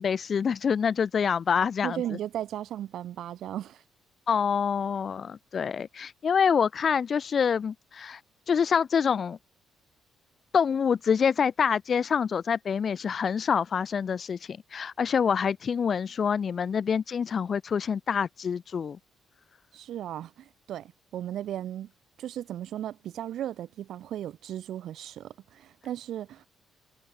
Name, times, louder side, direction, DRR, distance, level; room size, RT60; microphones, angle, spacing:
voice 1, 0.0-2.0 4.3-8.2 8.5-9.4 10.5-19.0, left 6 dB, 50° left, 0.7 m, -26 dB
voice 2, 1.8-3.8 19.7-21.9 22.2-26.5, right 11 dB, 75° right, 2.0 m, -36 dB
cardioid pair, 90°, 0 cm